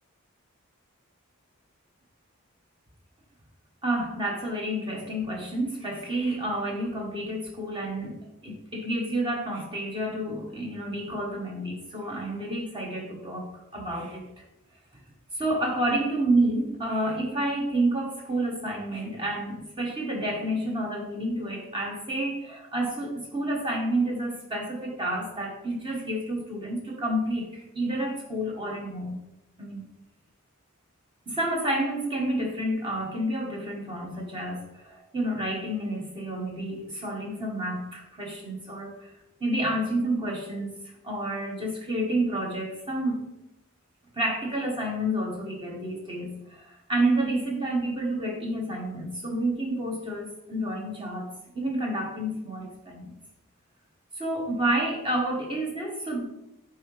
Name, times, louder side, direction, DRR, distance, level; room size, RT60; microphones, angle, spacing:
voice 1, 3.8-14.3 15.3-29.2 29.6-29.8 31.3-39.1 39.4-40.8 41.0-43.2 44.2-53.1 54.2-56.2, right 1 dB, 25° right, 0 dB, 1.2 m, -29 dB
7.5 x 4.6 x 3.2 m, 0.90 s
head